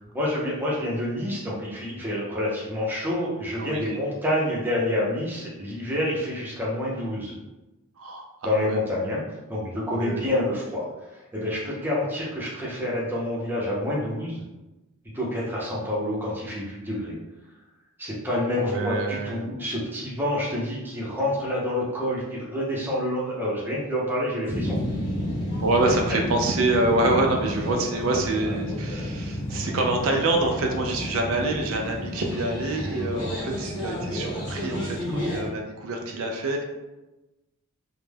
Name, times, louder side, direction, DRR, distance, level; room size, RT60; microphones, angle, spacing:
voice 1, 0.1-7.3 8.4-9.2 9.5-14.4 15.1-17.1 18.0-24.8, left 1 dB, 10° right, -6 dB, 0.5 m, -28 dB
voice 2, 3.6-4.0 8.0-8.8 9.1-9.2 9.9-10.2 18.5-19.5 25.6-36.6, right 2 dB, 65° right, 2 dB, 0.3 m, -26 dB
sound 1, 24.4-35.5, equal, 20° left, 0.8 m, -31 dB
2.2 x 2.0 x 3.2 m, 1.0 s
head